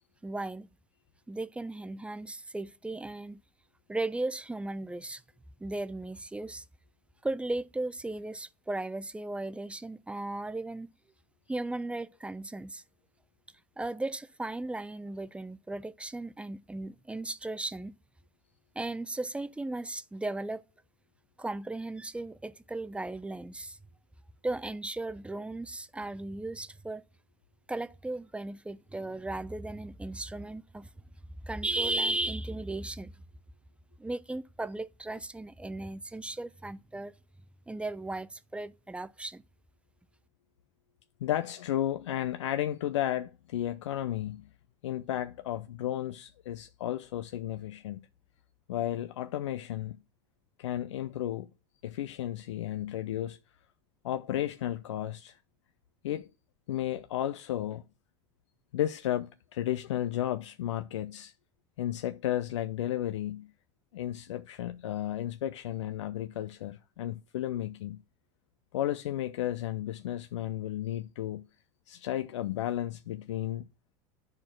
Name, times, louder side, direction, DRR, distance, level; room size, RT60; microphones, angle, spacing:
voice 1, 0.2-0.7 1.3-3.4 3.9-5.2 5.6-6.6 7.2-10.9 11.5-12.8 13.8-17.9 18.8-20.6 21.4-23.8 24.4-27.0 27.7-30.9 31.4-33.2 34.0-37.1 37.7-39.4, right 2 dB, 10° right, 0.6 m, -36 dB
voice 2, 41.2-44.5 44.8-48.0 48.7-50.0 50.6-51.5 51.8-53.4 54.0-55.4 56.0-56.3 56.7-57.8 58.7-61.3 61.8-63.5 63.9-68.0 68.7-71.5 71.9-73.7, left 12 dB, 90° left, 0.4 m, -33 dB
10.5 x 4.4 x 6.1 m
hypercardioid pair, 85°, 15 cm